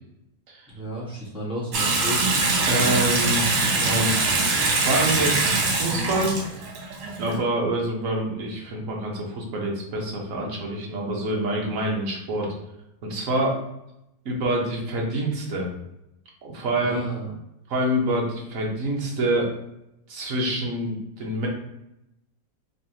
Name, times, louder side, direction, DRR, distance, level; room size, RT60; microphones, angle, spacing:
voice 1, 0.7-2.3 16.8-17.3, equal, 5° right, -8 dB, 1.1 m, -33 dB
Water tap faucet / Sink (filling or washing) / Bathtub (filling or washing), 1.7-7.4, right 3 dB, 85° right, 1.6 m, -23 dB
voice 2, 2.7-4.3 4.8-6.4 7.2-12.5 13.0-13.6 14.2-15.7 16.4-17.0 17.7-19.5 20.1-21.5, right 1 dB, 55° right, -1 dB, 1.2 m, -26 dB
3.9 x 3.0 x 2.8 m, 0.85 s
omnidirectional pair, 1.9 m